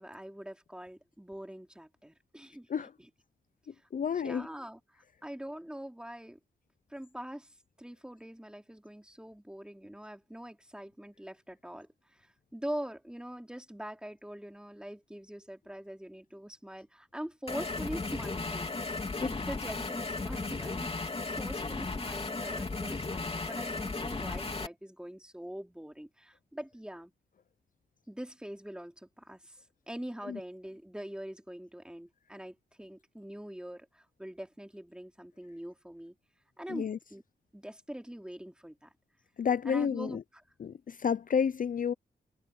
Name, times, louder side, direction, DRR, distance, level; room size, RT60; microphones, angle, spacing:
voice 1, 0.0-2.7 3.0-3.1 4.1-4.8 5.2-6.4 6.9-20.9 21.3-27.1 28.1-36.1 36.6-37.2 37.5-38.9 39.6-40.2, equal, 5° right, 3.1 m, -43 dB
voice 2, 3.9-4.5 19.2-19.3 30.3-30.4 36.7-37.0 39.4-40.2 40.6-41.9, left 7 dB, 50° left, 0.6 m, -30 dB
sound 1, 17.5-24.7, left 3 dB, 30° left, 3.5 m, -35 dB
cardioid pair, 90°, 18 cm